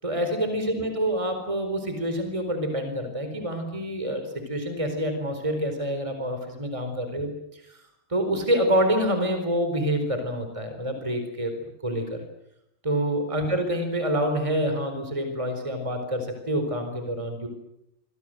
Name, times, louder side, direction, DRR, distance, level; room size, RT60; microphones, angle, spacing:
voice 1, 0.0-7.8 8.1-11.5 11.8-12.2 12.8-17.5, equal, 15° right, 6 dB, 4.3 m, -27 dB
26.5 x 25.0 x 7.8 m, 0.81 s
omnidirectional pair, 2.3 m